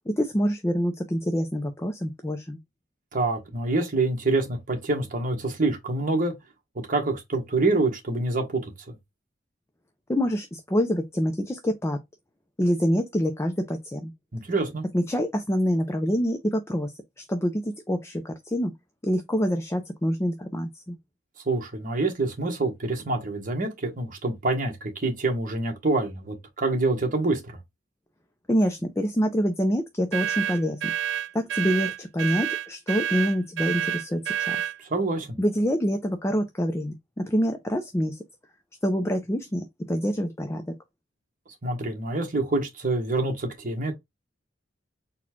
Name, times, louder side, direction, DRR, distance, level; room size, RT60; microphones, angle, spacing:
voice 1, 0.1-2.6 10.1-12.0 12.6-14.1 14.9-16.9 17.2-18.7 19.0-21.0 28.5-30.9 31.3-34.6 35.4-38.2 38.8-40.6, equal, 15° left, 0.5 m, -26 dB
voice 2, 3.1-6.3 6.9-8.9 14.3-14.8 21.4-27.6 34.8-35.4 41.6-43.9, right 2 dB, 45° right, 1.4 m, -26 dB
sound 1, 30.1-34.8, right 9 dB, 70° right, 0.5 m, -29 dB
4.2 x 2.3 x 4.4 m
head